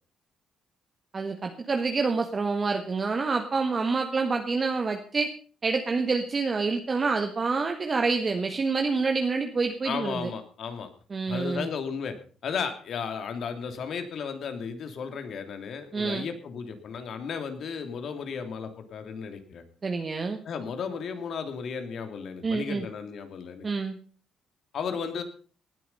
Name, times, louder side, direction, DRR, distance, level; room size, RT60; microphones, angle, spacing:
voice 1, 1.1-5.3 5.6-10.3 11.1-11.7 15.9-16.3 19.8-20.4 22.4-22.8 23.6-24.0, right 4 dB, 35° right, 4 dB, 1.6 m, -27 dB
voice 2, 9.8-10.9 11.3-12.2 12.4-19.6 20.4-23.7 24.7-25.2, left 6 dB, 65° left, 7 dB, 3.0 m, -34 dB
19.0 x 10.0 x 5.5 m, 0.41 s
cardioid pair, 90°, 0 cm